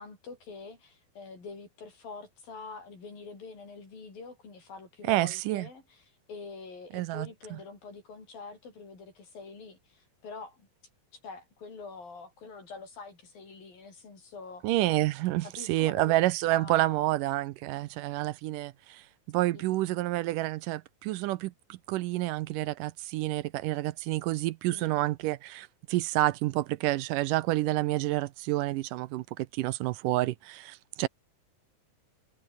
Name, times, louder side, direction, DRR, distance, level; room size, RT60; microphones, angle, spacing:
voice 1, 0.0-10.7 11.2-14.7 15.4-16.1 16.5-17.1 19.5-19.8 24.7-25.0, left 4 dB, 85° left, 8.9 m, -45 dB
voice 2, 5.1-5.7 6.9-7.6 14.6-31.1, right 17 dB, 80° right, 2.2 m, -29 dB
omnidirectional pair, 4.0 m